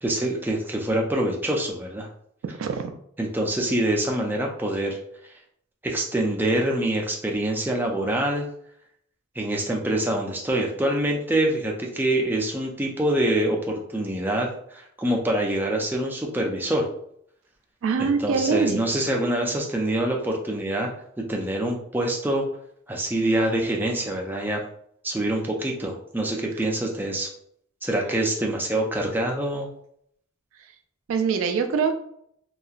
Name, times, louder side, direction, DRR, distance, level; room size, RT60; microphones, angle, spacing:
voice 1, 0.0-2.1 3.2-5.0 5.2-5.3 5.8-8.5 9.4-16.9 18.0-20.9 21.2-22.4 22.9-24.6 25.0-27.3 27.8-29.7, right 1 dB, 10° right, 0 dB, 0.4 m, -25 dB
voice 2, 2.4-2.9 17.8-18.8 31.1-31.9, right 5 dB, 80° right, 5 dB, 0.3 m, -24 dB
2.8 x 2.3 x 2.4 m, 0.69 s
head